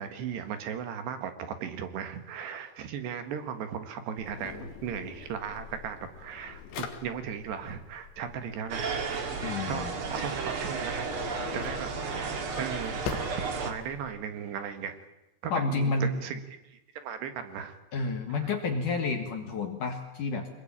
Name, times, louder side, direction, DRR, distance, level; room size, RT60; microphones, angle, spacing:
voice 1, 0.0-9.3 9.7-11.1 11.5-14.9 15.4-18.5, right 7 dB, 70° right, 8 dB, 3.5 m, -37 dB
Drawer open or close, 4.2-14.1, left 7 dB, 75° left, 4.1 m, -44 dB
sound 1, 8.7-13.7, right 4 dB, 45° right, 1.8 m, -33 dB
voice 2, 9.4-9.9 15.5-16.1 17.9-20.5, left 3 dB, 55° left, 4 dB, 2.6 m, -30 dB
25.0 x 21.5 x 8.8 m, 0.94 s
omnidirectional pair, 5.4 m